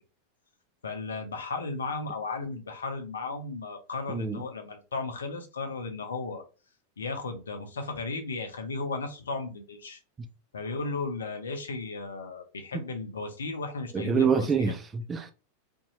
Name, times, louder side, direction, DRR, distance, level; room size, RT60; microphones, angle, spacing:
voice 1, 0.8-6.4 7.0-10.0 10.5-14.7, left 3 dB, 70° left, 0.6 m, -35 dB
voice 2, 4.1-4.4 13.9-15.3, right 6 dB, 20° right, 0.4 m, -26 dB
2.6 x 2.2 x 2.7 m
figure-of-eight pair, 90°, 0 cm